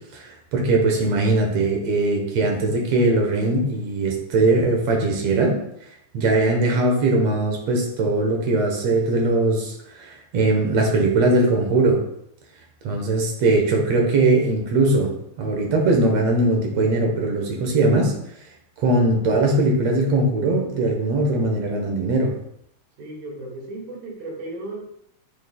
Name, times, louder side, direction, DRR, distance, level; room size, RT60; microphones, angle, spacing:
voice 1, 0.1-5.6 6.1-9.7 10.0-12.0 12.8-15.1 15.4-18.1 18.8-22.3, right 2 dB, 60° right, 1 dB, 1.9 m, -20 dB
voice 2, 23.0-24.8, right 2 dB, 75° right, -3 dB, 3.9 m, -35 dB
8.2 x 7.7 x 2.3 m, 0.74 s
omnidirectional pair, 4.1 m